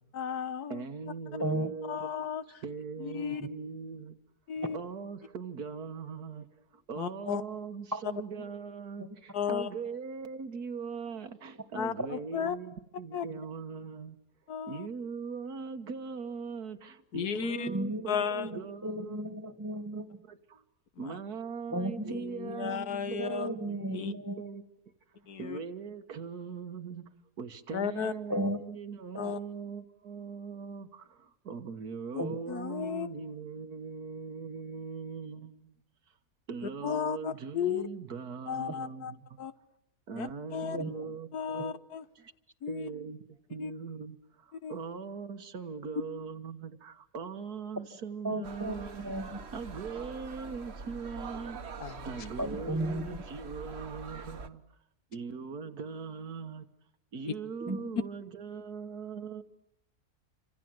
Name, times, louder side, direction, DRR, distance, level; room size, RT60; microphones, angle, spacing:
voice 1, 0.1-0.8 1.9-2.4 3.0-3.5 4.5-4.8 7.0-7.4 9.3-9.7 11.7-12.6 13.1-13.2 14.5-14.9 17.1-17.7 18.1-18.5 21.0-21.2 22.1-23.5 23.9-24.1 25.3-25.6 27.7-28.1 29.2-29.4 32.1-33.1 36.8-37.9 38.5-39.1 39.4-39.5 40.2-40.8 41.3-42.0 42.6-42.9 43.6-43.7 44.6-44.8 51.8-52.1 57.3-57.4, left 7 dB, 85° left, 1.8 m, -34 dB
voice 2, 0.7-2.1 2.6-4.1 4.7-6.4 6.9-9.1 9.5-14.1 14.7-16.8 17.1-19.2 21.0-22.8 23.1-24.6 25.4-27.0 27.4-30.9 31.5-35.5 36.5-39.2 40.1-41.3 41.5-41.7 42.7-43.2 43.5-44.2 44.7-49.1 49.5-51.6 52.1-54.6 55.1-56.6 57.1-59.4, right 5 dB, 80° right, 2.0 m, -40 dB
voice 3, 1.4-1.7 3.4-3.5 4.6-4.7 7.9-8.0 8.3-8.4 9.0-9.1 12.0-12.1 17.7-20.2 21.7-22.2 22.5-24.4 28.3-28.6 32.2-32.5 40.7-41.2 48.2-48.8 49.0-49.4 52.4-53.2 57.6-57.9, right 1 dB, 10° right, 1.8 m, -35 dB
sound 1, 48.4-54.5, right 4 dB, 45° right, 1.4 m, -44 dB
28.0 x 25.5 x 7.8 m
omnidirectional pair, 1.6 m